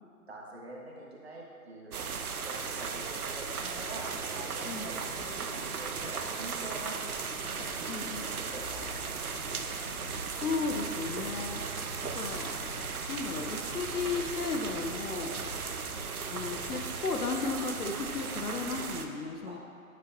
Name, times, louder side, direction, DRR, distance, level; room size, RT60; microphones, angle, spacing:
voice 1, 0.3-2.0 2.4-4.0 4.3-7.0 7.5-9.2 9.5-9.7 19.4-19.6, right 1 dB, 45° right, -3 dB, 1.3 m, -46 dB
sound 1, 1.9-19.1, right 5 dB, 75° right, 0.7 m, -37 dB
sound 2, 4.6-17.2, left 1 dB, 40° left, 0.5 m, -47 dB
voice 2, 7.9-8.4 10.3-11.6 12.1-12.5 13.1-15.4 16.3-19.6, left 4 dB, 80° left, 3 dB, 0.8 m, -34 dB
9.2 x 5.6 x 2.6 m, 2.5 s
figure-of-eight pair, 160°, 45 cm